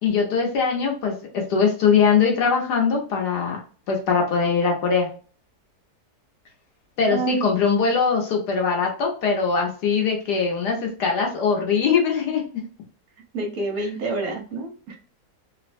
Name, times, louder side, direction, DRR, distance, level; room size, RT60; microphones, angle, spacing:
voice 1, 0.0-3.6 3.9-5.1 7.0-12.4, left 5 dB, 85° left, 0 dB, 1.5 m, -21 dB
voice 2, 7.1-7.4 13.3-15.0, right 3 dB, 65° right, 3 dB, 1.1 m, -28 dB
3.4 x 2.1 x 2.5 m, 0.40 s
omnidirectional pair, 1.7 m